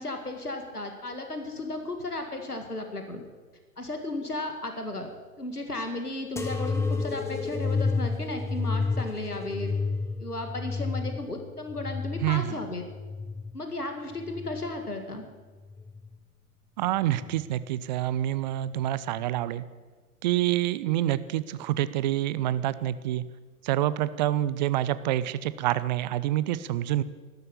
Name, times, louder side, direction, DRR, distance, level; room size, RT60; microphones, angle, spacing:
voice 1, 0.0-3.2 3.8-5.1 5.4-9.7 10.2-12.8 13.5-15.2, left 2 dB, 90° left, 5 dB, 2.1 m, -34 dB
sound 1, 6.4-13.6 14.1-14.9 15.6-16.2 17.1-17.2, left 4 dB, 5° left, 1.2 m, -31 dB
voice 2, 12.2-12.6 16.8-19.6 20.2-23.2 23.6-27.0, right 13 dB, 30° right, 16 dB, 0.6 m, -27 dB
12.5 x 12.0 x 8.4 m, 1.4 s
figure-of-eight pair, 110°, 44 cm